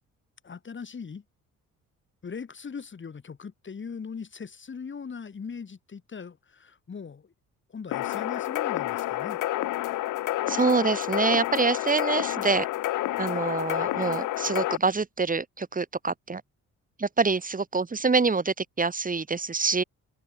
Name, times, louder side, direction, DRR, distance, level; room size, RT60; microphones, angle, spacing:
voice 1, 0.4-1.2 2.2-7.3 7.7-9.4, left 6 dB, 40° left, 7.7 m, -40 dB
sound 1, 7.9-14.8, left 15 dB, 85° left, 1.9 m, -29 dB
voice 2, 10.5-12.7 13.2-16.4 17.0-19.8, right 4 dB, 25° right, 4.4 m, -26 dB
open air
cardioid pair, 90°, 30 cm